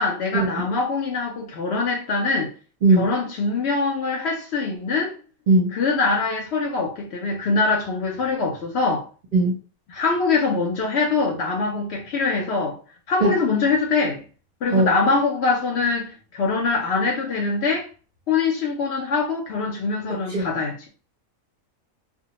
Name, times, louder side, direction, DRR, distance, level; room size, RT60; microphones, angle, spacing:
voice 1, 0.0-2.5 2.9-5.1 5.7-9.1 9.9-12.8 13.1-14.2 14.6-17.9 18.3-20.9, left 4 dB, 65° left, 0.7 m, -23 dB
voice 2, 20.1-20.5, right 2 dB, 50° right, 0.6 m, -19 dB
2.3 x 2.1 x 2.9 m
omnidirectional pair, 1.4 m